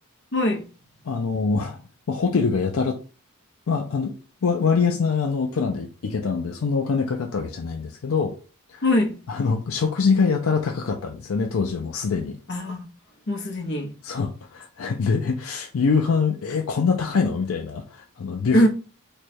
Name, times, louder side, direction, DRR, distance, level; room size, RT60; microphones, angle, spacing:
voice 1, 0.3-0.6 8.8-9.1 12.5-12.9 13.3-13.9 18.5-18.7, left 1 dB, 55° left, 0.9 m, -21 dB
voice 2, 1.0-3.0 3.7-4.2 4.4-8.4 8.7-8.8 9.3-12.4 14.0-18.7, left 5 dB, 80° left, 0.5 m, -24 dB
3.2 x 2.3 x 4.2 m
head